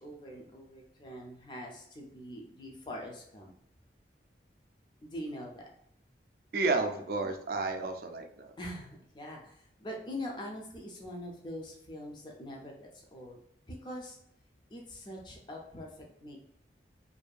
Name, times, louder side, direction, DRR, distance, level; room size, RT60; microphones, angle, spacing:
voice 1, 0.0-3.5 5.0-5.7 8.6-13.4 13.7-14.2 14.7-16.4, left 1 dB, 25° left, 0 dB, 0.4 m, -43 dB
voice 2, 6.5-8.5, right 3 dB, 55° right, 5 dB, 0.3 m, -31 dB
2.6 x 2.2 x 2.3 m, 0.71 s
head